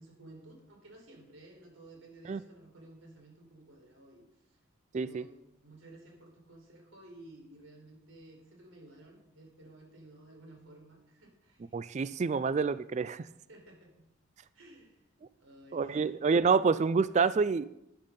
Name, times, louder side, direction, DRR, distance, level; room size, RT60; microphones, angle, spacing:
voice 1, 0.0-4.6 4.9-11.8 13.5-14.1 14.5-15.0 15.4-16.2, right 1 dB, 80° right, 2 dB, 4.3 m, -54 dB
voice 2, 11.7-13.3 15.7-17.6, right 5 dB, 35° right, 15 dB, 0.3 m, -27 dB
12.0 x 10.5 x 5.3 m, 0.84 s
head